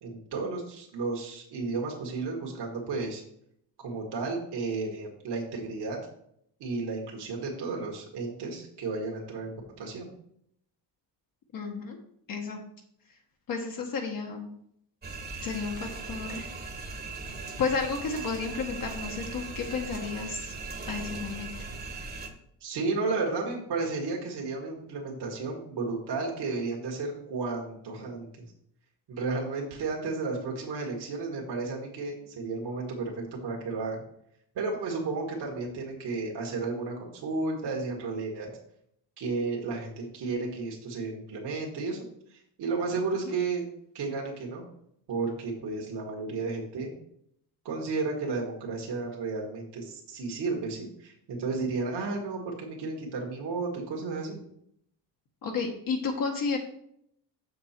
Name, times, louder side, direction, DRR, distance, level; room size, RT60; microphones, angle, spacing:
voice 1, 0.0-3.2 3.8-6.0 6.6-10.1 22.6-28.5 29.1-34.0 34.6-38.5 39.2-42.0 42.3-43.6 43.9-44.6 45.1-46.9 47.7-54.4, right 3 dB, 65° right, -1 dB, 1.9 m, -33 dB
voice 2, 11.5-12.0 12.3-12.6 13.5-14.5 15.4-16.5 17.6-20.5 20.8-21.5 43.3-43.4 55.4-56.6, left 5 dB, 50° left, 1 dB, 1.2 m, -32 dB
sound 1, 15.0-22.3, right 4 dB, 25° right, 1.2 m, -39 dB
6.7 x 6.2 x 4.4 m, 0.72 s
cardioid pair, 115°, 43 cm